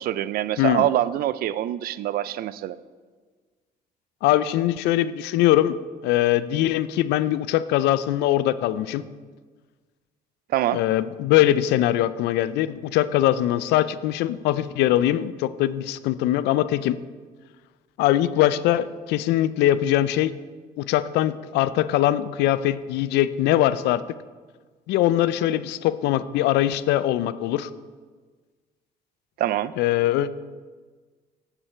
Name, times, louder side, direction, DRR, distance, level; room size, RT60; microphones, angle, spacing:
voice 1, 0.0-2.8 10.5-10.8 29.4-29.7, right 12 dB, 60° right, 16 dB, 0.4 m, -25 dB
voice 2, 4.2-5.8 6.0-9.0 10.7-17.0 18.0-20.3 20.8-24.0 24.9-27.7 29.8-30.3, left 13 dB, 85° left, 15 dB, 0.4 m, -22 dB
9.9 x 7.4 x 4.4 m, 1.5 s
cardioid pair, 110°, 17 cm